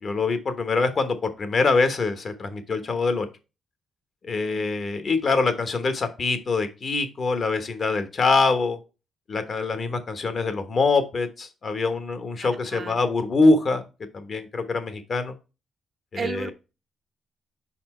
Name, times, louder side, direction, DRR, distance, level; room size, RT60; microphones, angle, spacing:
voice 1, 0.0-3.3 4.2-8.8 9.3-13.8 14.1-15.3 16.1-16.5, left 3 dB, 45° left, 1.1 m, -24 dB
voice 2, 12.4-13.0 16.2-16.5, right 6 dB, 40° right, 0.5 m, -34 dB
5.6 x 4.3 x 4.2 m
cardioid pair, 120°, 0 cm